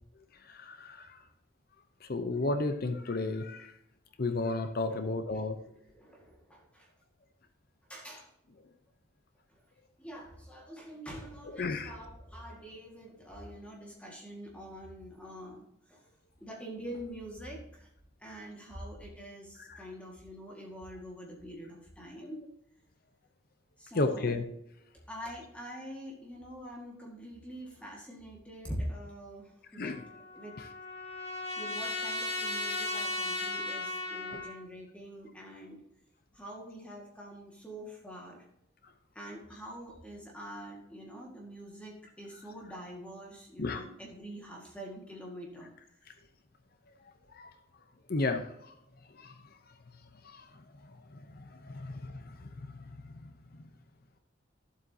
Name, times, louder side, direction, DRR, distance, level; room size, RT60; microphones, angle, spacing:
voice 1, 0.5-1.2 2.0-3.7 4.2-5.6 11.5-11.9 19.6-19.9 23.9-24.4 29.7-30.0 30.6-30.7 34.3-34.4 43.6-43.9 47.3-47.5 48.1-48.7 49.2-49.3 50.2-50.5 51.1-52.8 53.1-53.7, left 3 dB, 50° left, 7 dB, 0.7 m, -34 dB
voice 2, 5.6-6.9 7.9-8.3 10.0-15.6 15.9-16.0 16.4-17.9 18.2-22.5 23.8-24.3 25.1-30.0 30.3-30.6 31.6-35.8 36.3-38.5 39.2-45.7, equal, 5° left, -2 dB, 1.8 m, -45 dB
Trumpet, 29.8-34.6, left 2 dB, 30° left, 2.0 m, -36 dB
12.5 x 7.8 x 2.8 m, 0.78 s
head